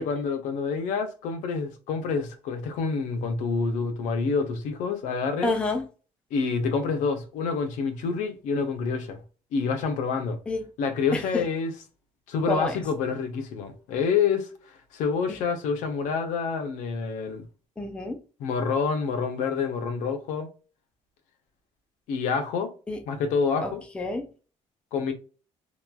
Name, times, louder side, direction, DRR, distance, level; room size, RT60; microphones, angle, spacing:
voice 1, 0.0-5.5 6.3-9.2 9.5-10.4 10.8-11.7 12.3-14.5 14.9-17.4 18.4-20.5 22.1-22.7 23.1-23.8 24.9-25.1, left 5 dB, 80° left, 0.7 m, -27 dB
voice 2, 5.4-5.9 10.5-10.7 11.1-11.5 12.5-12.8 15.3-15.4 17.8-18.2 22.9-23.0 23.6-24.3, left 2 dB, 10° left, 0.4 m, -29 dB
3.0 x 2.2 x 2.3 m
cardioid pair, 145°, 13 cm